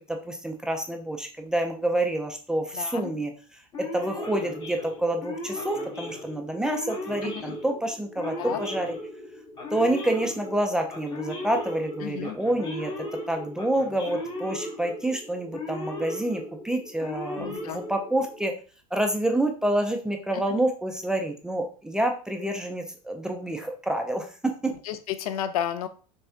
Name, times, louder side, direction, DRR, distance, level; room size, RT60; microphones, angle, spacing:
voice 1, 0.0-3.3 3.8-9.0 9.7-18.5 18.9-24.7, right 1 dB, 5° right, 3 dB, 0.4 m, -28 dB
voice 2, 2.7-3.1 7.2-7.5 8.4-8.6 12.0-12.4 17.4-17.8 20.3-20.4 24.7-25.9, left 10 dB, 75° left, 11 dB, 0.6 m, -32 dB
Male speech man speaking / Siren, 3.7-18.5, left 2 dB, 20° left, 0.8 m, -37 dB
5.6 x 3.3 x 2.7 m, 0.38 s
supercardioid pair, 150°, 19 cm